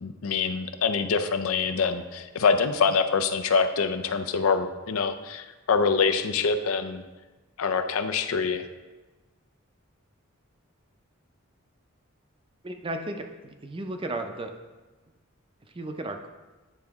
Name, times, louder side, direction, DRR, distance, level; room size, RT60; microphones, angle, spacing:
voice 1, 0.0-7.0 7.6-8.7, left 5 dB, 85° left, 9 dB, 0.5 m, -25 dB
voice 2, 12.6-14.5 15.7-16.3, right 2 dB, 25° right, 5 dB, 0.5 m, -34 dB
9.8 x 3.8 x 3.5 m, 1.2 s
head